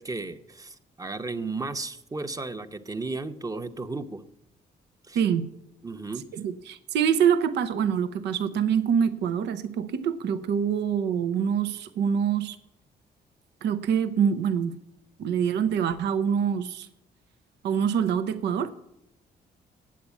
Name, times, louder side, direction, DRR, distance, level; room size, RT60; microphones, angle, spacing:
voice 1, 0.0-4.2 5.1-5.2 5.8-6.3, right 3 dB, 20° right, 9 dB, 0.8 m, -34 dB
voice 2, 5.1-5.5 6.3-12.6 13.6-14.7 15.2-16.9 17.6-18.7, right 7 dB, 80° right, 11 dB, 0.7 m, -25 dB
8.5 x 8.2 x 8.3 m, 0.83 s
cardioid pair, 85°, 17 cm